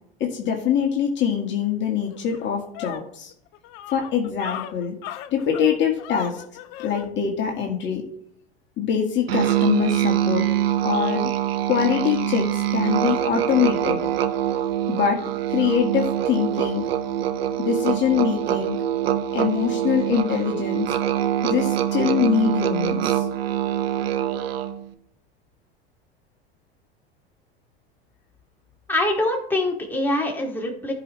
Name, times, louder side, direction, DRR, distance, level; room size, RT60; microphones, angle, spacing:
voice 1, 0.2-3.3 3.9-4.9 5.3-6.4 6.8-8.0 8.8-10.5 10.8-11.3 11.7-14.0 14.9-15.2 15.5-16.9 17.6-18.8 19.3-20.9 21.4-23.3, left 8 dB, 40° left, 0 dB, 1.9 m, -23 dB
sound 1, 1.6-1.7 2.1-7.1, left 12 dB, 55° left, 0.8 m, -37 dB
Musical instrument, 9.3-24.8, right 11 dB, 75° right, 0.8 m, -24 dB
voice 2, 28.9-30.9, left 1 dB, 5° left, -1 dB, 2.4 m, -24 dB
15.0 x 5.3 x 3.2 m, 0.71 s
hypercardioid pair, 85°, 30 cm